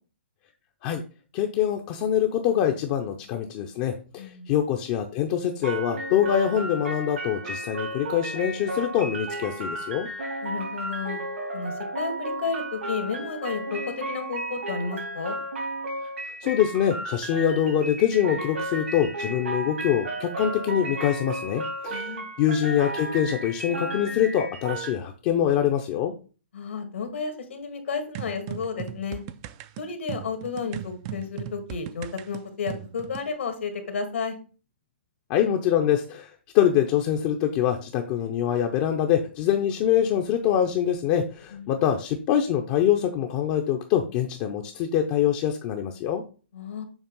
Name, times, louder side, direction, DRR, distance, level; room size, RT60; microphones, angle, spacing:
voice 1, 1.3-10.1 16.4-26.1 35.3-46.2, left 10 dB, 30° left, 4 dB, 0.6 m, -24 dB
voice 2, 4.2-4.5 10.4-11.2 11.5-15.4 21.9-22.2 26.5-29.2 29.8-34.3 41.5-41.8 46.5-46.8, left 5 dB, 80° left, 6 dB, 1.8 m, -32 dB
sound 1, 5.6-24.9, right 1 dB, 85° right, 3.6 m, -33 dB
sound 2, 28.1-33.3, right 12 dB, 30° right, 0.4 m, -38 dB
7.2 x 2.9 x 5.4 m, 0.37 s
hypercardioid pair, 155°, 7 cm